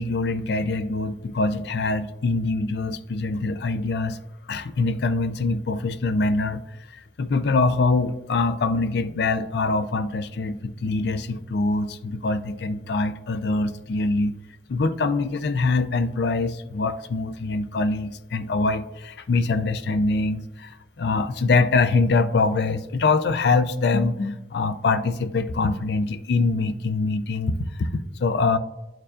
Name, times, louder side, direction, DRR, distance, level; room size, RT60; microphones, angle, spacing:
voice 1, 0.0-4.2 4.5-6.6 6.9-14.3 14.7-27.9 28.2-28.6, left 3 dB, 60° left, 11 dB, 0.4 m, -24 dB
11.0 x 4.6 x 2.4 m, 0.99 s
head